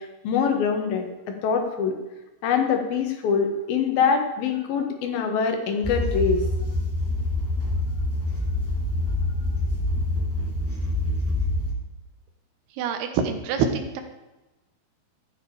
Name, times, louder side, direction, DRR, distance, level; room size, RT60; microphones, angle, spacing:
voice 1, 0.0-1.9 2.4-6.4, left 6 dB, 70° left, 5 dB, 3.3 m, -24 dB
sound 1, 5.8-11.7, left 2 dB, 5° right, 1.8 m, -26 dB
voice 2, 12.7-14.0, right 6 dB, 85° right, 6 dB, 3.1 m, -25 dB
14.5 x 9.4 x 5.0 m, 1.0 s
omnidirectional pair, 4.5 m